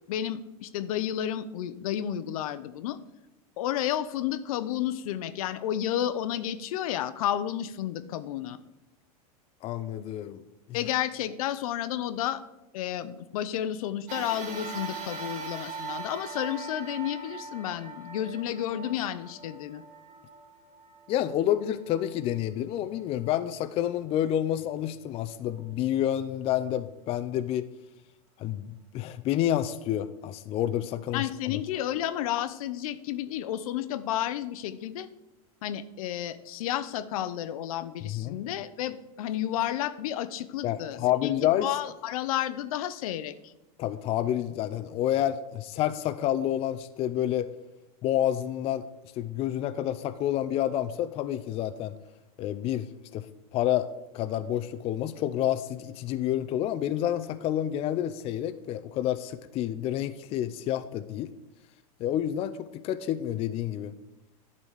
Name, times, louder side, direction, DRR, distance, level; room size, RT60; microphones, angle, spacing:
voice 1, 0.1-3.0 3.6-8.6 10.7-12.4 12.7-19.8 31.1-35.1 35.6-43.5, left 11 dB, 70° left, 14 dB, 0.6 m, -31 dB
voice 2, 9.6-10.4 21.1-27.7 28.4-31.6 38.0-38.4 40.6-41.7 43.8-47.5 48.0-48.8 49.2-51.9 52.4-53.3 53.5-61.3 62.0-63.9, left 11 dB, 30° left, 11 dB, 0.4 m, -29 dB
sound 1, 14.1-22.7 23.3-23.4 24.5-24.6, right 4 dB, 55° right, 2.2 m, -41 dB
10.5 x 4.1 x 6.3 m, 0.96 s
supercardioid pair, 130°, 19 cm